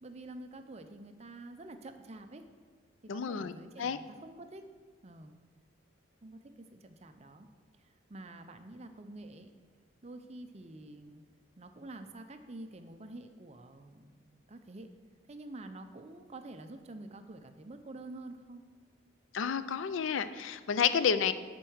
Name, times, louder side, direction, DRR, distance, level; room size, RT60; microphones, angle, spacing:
voice 1, 0.0-2.4 3.0-4.7 5.0-5.3 6.2-7.5 7.8-9.5 10.0-11.2 11.6-14.9 15.3-18.6, right 2 dB, 30° right, 8 dB, 0.5 m, -48 dB
voice 2, 3.1-4.0 19.3-21.3, left 7 dB, 70° left, 13 dB, 0.4 m, -30 dB
10.5 x 4.5 x 6.3 m, 1.5 s
head